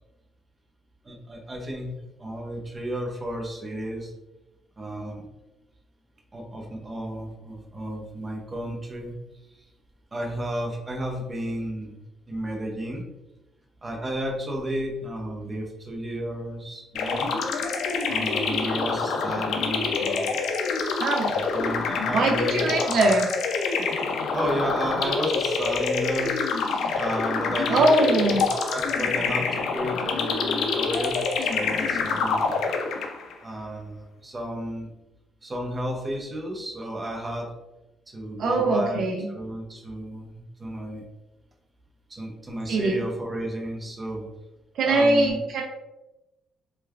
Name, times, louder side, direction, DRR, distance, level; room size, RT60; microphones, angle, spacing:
voice 1, 1.0-1.9 2.2-4.1 4.8-5.3 6.3-9.2 9.6-9.7 10.1-12.0 12.3-13.0 13.8-17.3 18.1-20.4 21.3-23.1 24.3-26.4 26.9-27.8 28.2-32.5 33.4-34.9 35.4-37.5 38.1-39.0 39.3-41.0 42.1-44.3 44.8-45.4, equal, 25° right, 0 dB, 0.7 m, -32 dB
sound 1, 16.9-33.3, left 4 dB, 80° left, 0.3 m, -26 dB
voice 2, 21.0-21.3 22.1-23.3 27.7-28.4 38.4-39.3 42.7-43.0 44.8-45.6, right 2 dB, 70° right, 1 dB, 0.3 m, -22 dB
3.1 x 2.3 x 2.3 m, 0.99 s
cardioid pair, 90°, 0 cm